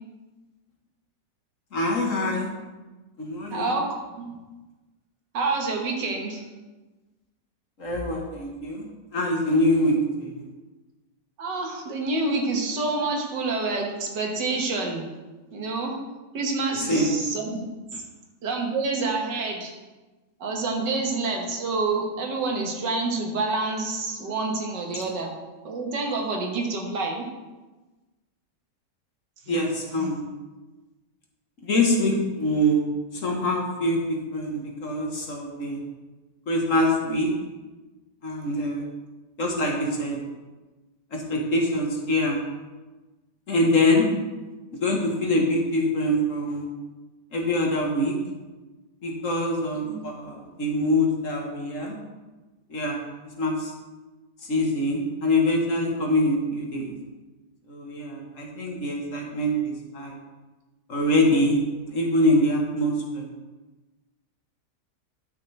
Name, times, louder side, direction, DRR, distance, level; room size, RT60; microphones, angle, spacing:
voice 1, 1.7-2.5 3.2-3.7 7.8-10.4 16.9-17.1 24.9-25.0 29.5-30.2 31.6-32.8 33.2-35.8 36.5-37.3 38.2-38.8 39.4-40.2 41.1-42.4 43.5-44.1 44.8-46.7 47.3-48.1 49.0-52.0 52.7-53.0 53.4-53.7 54.5-56.9 57.7-60.2 60.9-61.6 61.9-63.3, left 1 dB, 50° left, 0 dB, 1.6 m, -24 dB
voice 2, 3.5-4.3 5.3-6.5 11.4-15.1 15.5-15.9 16.3-17.7 18.4-19.7 20.4-25.3 25.6-27.3 29.5-29.6 29.9-30.1 49.8-50.0, right 3 dB, 80° right, 1 dB, 2.0 m, -28 dB
12.0 x 6.0 x 3.3 m, 1.2 s
omnidirectional pair, 1.9 m